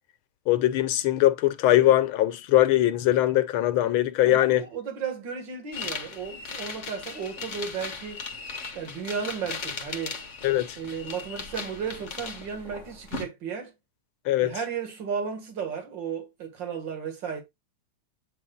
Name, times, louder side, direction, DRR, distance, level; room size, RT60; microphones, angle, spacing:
voice 1, 0.5-4.7 10.4-10.8 14.3-14.6, left 14 dB, 90° left, 1.6 m, -21 dB
voice 2, 4.3-8.2 8.8-10.2 10.8-13.7 14.4-17.4, right 6 dB, 65° right, 2.4 m, -34 dB
sound 1, 5.7-13.2, left 4 dB, 40° left, 1.4 m, -37 dB
9.0 x 3.2 x 3.8 m
omnidirectional pair, 2.2 m